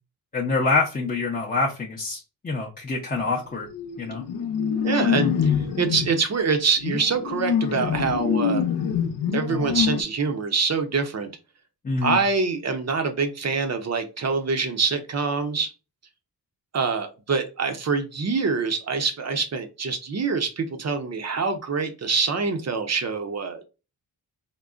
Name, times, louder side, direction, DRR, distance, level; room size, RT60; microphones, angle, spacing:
voice 1, 0.3-3.7 4.0-4.2 11.8-12.2, left 3 dB, 20° left, -3 dB, 0.5 m, -26 dB
sound 1, 3.2-3.4 3.7-6.1 6.8-10.0, left 7 dB, 80° left, 0.6 m, -25 dB
voice 2, 4.8-8.6 9.3-11.3 12.0-15.7 16.7-23.6, right 4 dB, 40° right, 6 dB, 0.6 m, -25 dB
3.7 x 2.0 x 2.3 m, 0.30 s
cardioid pair, 85°, 41 cm